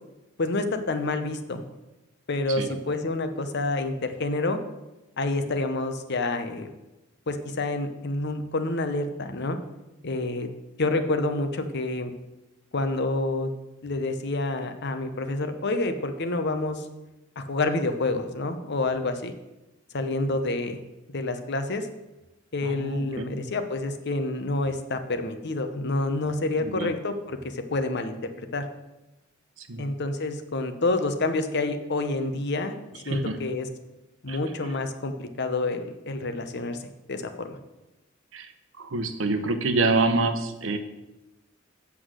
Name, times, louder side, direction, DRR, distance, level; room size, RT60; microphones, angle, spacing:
voice 1, 0.4-1.6 2.3-4.6 5.2-6.7 7.3-9.6 10.0-10.5 10.8-12.1 12.7-13.5 13.8-16.9 17.4-19.3 19.9-20.8 21.1-21.9 22.5-28.6 29.8-32.7 33.1-33.7 34.2-36.8 37.1-37.6, left 2 dB, 60° left, 8 dB, 0.9 m, -28 dB
voice 2, 22.6-23.5 26.6-26.9 29.6-29.9 33.0-33.5 34.3-34.4 38.3-38.5 38.8-40.8, right 3 dB, 75° right, 8 dB, 0.9 m, -27 dB
8.1 x 6.0 x 6.3 m, 1.0 s
head